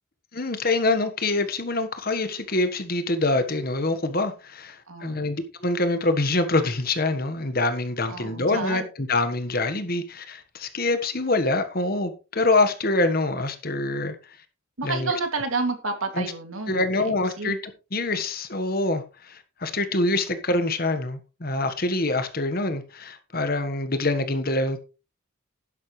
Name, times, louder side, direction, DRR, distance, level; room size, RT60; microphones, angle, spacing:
voice 1, 0.3-14.1 14.8-15.1 16.1-16.3 16.7-17.6 17.9-24.8, left 2 dB, 45° left, 1.5 m, -25 dB
voice 2, 4.9-5.3 8.1-8.9 14.8-17.5, right 3 dB, 80° right, 2.6 m, -30 dB
11.0 x 11.0 x 3.3 m
head